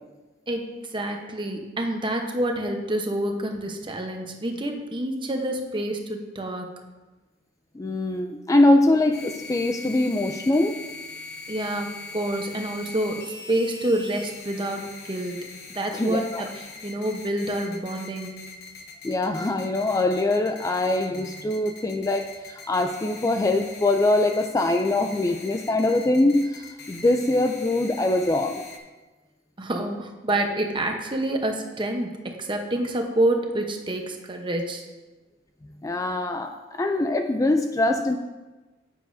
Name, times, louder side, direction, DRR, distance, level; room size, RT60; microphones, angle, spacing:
voice 1, 0.5-6.7 11.5-18.3 29.6-34.8, right 1 dB, 25° right, 3 dB, 0.9 m, -28 dB
voice 2, 7.8-10.8 15.9-16.4 19.0-28.6 35.8-38.2, left 2 dB, 20° left, 5 dB, 0.3 m, -23 dB
sound 1, 9.1-28.8, left 3 dB, 60° left, 1.0 m, -42 dB
9.6 x 8.3 x 2.7 m, 1.2 s
head